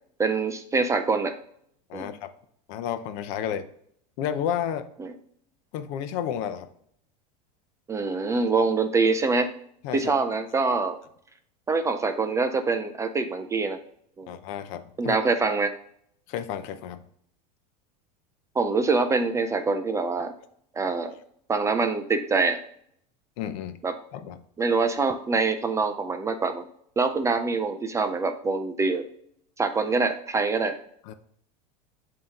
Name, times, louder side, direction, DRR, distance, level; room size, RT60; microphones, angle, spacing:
voice 1, 0.2-1.3 1.9-2.1 5.0-5.1 7.9-9.5 9.9-11.0 11.7-13.8 14.2-14.3 15.0-15.7 18.6-20.3 20.7-21.2 21.5-22.6 23.8-23.9 24.6-26.6 27.0-29.0 29.6-30.8, right 4 dB, 15° right, 7 dB, 0.3 m, -25 dB
voice 2, 1.9-2.3 2.7-3.6 4.2-4.9 5.7-6.7 9.8-10.1 14.3-15.2 16.3-17.0 23.4-23.8 24.1-24.4 31.1-31.2, left 9 dB, 55° left, 10 dB, 0.6 m, -31 dB
7.4 x 2.9 x 4.4 m, 0.66 s
supercardioid pair, 125°, 21 cm